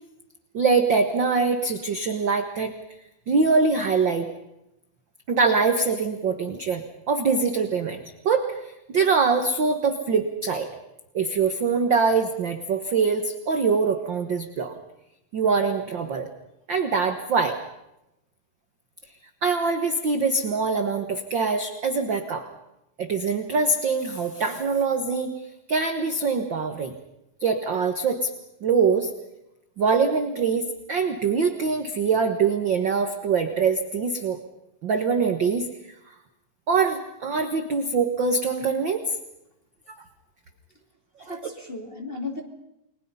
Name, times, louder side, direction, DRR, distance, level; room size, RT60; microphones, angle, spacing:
voice 1, 0.5-2.7 3.3-4.3 5.3-10.7 11.1-14.8 15.3-16.3 16.7-17.6 19.4-22.4 23.0-25.3 25.7-26.9 27.4-28.3 28.6-29.1 29.8-34.4 34.8-35.6 36.7-39.0 39.9-40.0 41.2-41.3, right 4 dB, 60° right, 6 dB, 1.2 m, -23 dB
voice 2, 41.2-42.4, left 3 dB, 15° left, 2 dB, 2.4 m, -35 dB
30.0 x 21.5 x 5.6 m, 0.88 s
omnidirectional pair, 4.1 m